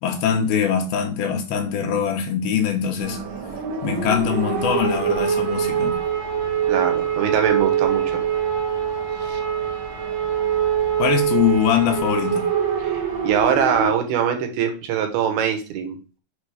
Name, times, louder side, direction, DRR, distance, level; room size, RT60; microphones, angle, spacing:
voice 1, 0.0-3.2 3.8-6.0 11.0-12.4, left 8 dB, 75° left, 3 dB, 3.1 m, -22 dB
sound 1, 3.0-13.9, right 8 dB, 60° right, 1.3 m, -24 dB
voice 2, 6.7-8.2 9.3-9.4 12.8-16.2, right 8 dB, 80° right, 5 dB, 3.1 m, -23 dB
7.4 x 5.1 x 5.0 m, 0.34 s
omnidirectional pair, 4.6 m